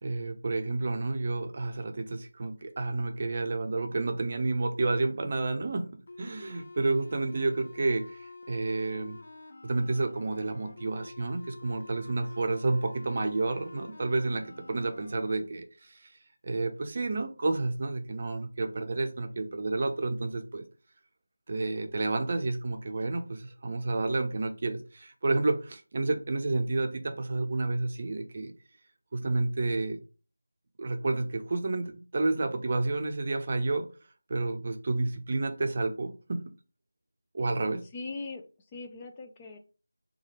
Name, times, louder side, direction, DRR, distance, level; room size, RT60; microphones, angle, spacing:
voice 1, 0.0-5.9 6.2-9.2 9.6-16.1 16.4-20.6 21.5-28.5 29.1-30.0 30.8-33.9 34.3-36.4 37.3-37.8, right 3 dB, 35° right, 5 dB, 0.6 m, -30 dB
sound 1, 6.1-15.3, left 2 dB, 50° left, 0.8 m, -48 dB
voice 2, 37.8-39.6, left 3 dB, 15° left, 3 dB, 0.3 m, -41 dB
3.2 x 2.3 x 4.2 m, 0.35 s
figure-of-eight pair, 170°, 0 cm